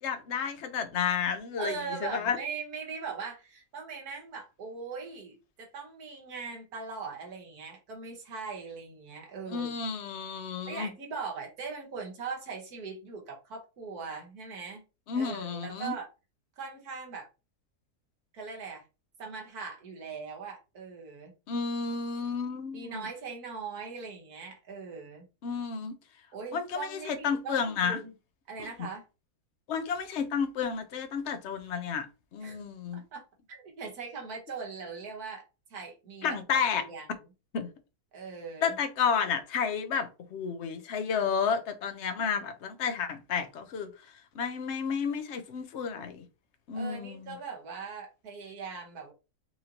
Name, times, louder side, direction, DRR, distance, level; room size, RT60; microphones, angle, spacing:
voice 1, 0.0-2.4 9.5-10.9 15.1-15.9 21.5-23.1 25.4-25.9 26.5-28.0 29.7-32.1 32.3-33.0 36.2-36.9 37.5-37.7 38.6-43.9 44.3-46.2 46.7-47.4, left 6 dB, 60° left, 0.7 m, -31 dB
voice 2, 1.6-9.7 10.7-14.8 15.2-16.1 16.6-17.3 18.3-18.8 19.2-21.3 22.7-25.3 26.3-28.1 28.5-29.0 32.4-32.6 32.9-33.2 33.5-35.4 35.7-36.4 36.8-37.0 38.1-38.7 46.7-49.1, right 5 dB, 70° right, 1.7 m, -40 dB
4.2 x 2.6 x 2.9 m
omnidirectional pair, 1.7 m